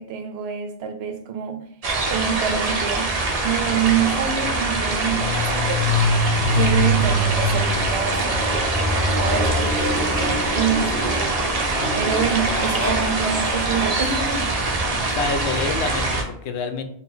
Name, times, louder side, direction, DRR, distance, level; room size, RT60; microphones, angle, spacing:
voice 1, 0.0-1.7 2.1-3.1 3.4-6.1 6.5-8.6 9.1-11.4 12.0-14.6, right 8 dB, 70° right, 7 dB, 0.8 m, -26 dB
sound 1, 1.8-16.2, right 3 dB, 45° right, 0.6 m, -24 dB
Motorcycle, 3.4-16.1, left 1 dB, 15° right, 1.1 m, -26 dB
voice 2, 14.8-16.8, left 4 dB, 85° left, 7 dB, 0.8 m, -28 dB
4.0 x 2.1 x 4.1 m, 0.67 s
omnidirectional pair, 1.1 m